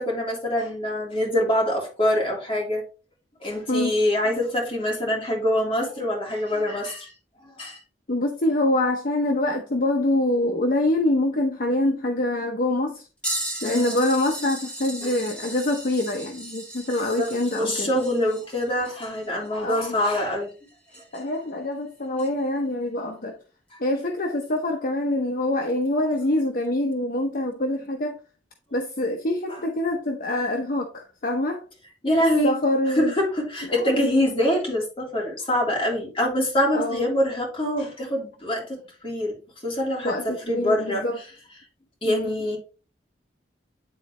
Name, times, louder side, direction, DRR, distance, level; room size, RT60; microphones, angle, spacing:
voice 1, 0.0-2.8 3.4-7.1 7.6-7.8 13.6-14.0 15.0-15.2 17.0-20.5 29.5-29.6 32.0-32.5 32.9-38.6 39.0-39.4 39.6-40.1 40.4-41.0 42.0-42.6, left 1 dB, 30° left, 3.3 m, -24 dB
voice 2, 3.7-4.0 8.1-13.1 13.6-17.9 19.5-20.0 21.1-23.3 23.8-28.2 28.7-31.6 32.4-33.1 33.7-34.1 36.7-37.0 40.0-41.2 42.0-42.3, left 1 dB, 55° left, 0.8 m, -25 dB
sound 1, 13.2-21.4 22.2-22.3 24.6-24.7 25.7-25.9 26.9-27.0, right 1 dB, 5° left, 2.1 m, -36 dB
9.7 x 4.0 x 3.2 m
head